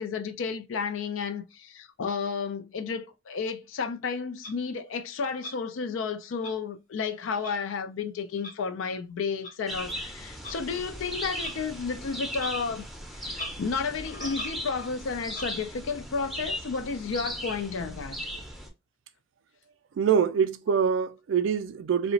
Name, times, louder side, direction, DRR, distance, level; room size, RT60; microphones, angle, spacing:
voice 1, 0.0-12.9 13.1-18.2, left 5 dB, 85° left, 0.4 m, -32 dB
Clock, 4.4-4.5 5.4-5.6 6.4-6.5 7.4-7.6 8.4-8.5 9.4-9.5 10.4-10.6 11.4-11.6 12.3-12.5 12.8-12.9 13.3-13.5 14.0-14.9 15.3-15.5, left 2 dB, 40° left, 0.7 m, -41 dB
sound 1, 9.7-18.7, equal, ahead, 0.5 m, -38 dB
voice 2, 20.0-22.1, right 7 dB, 75° right, 0.3 m, -24 dB
2.8 x 2.1 x 2.6 m
head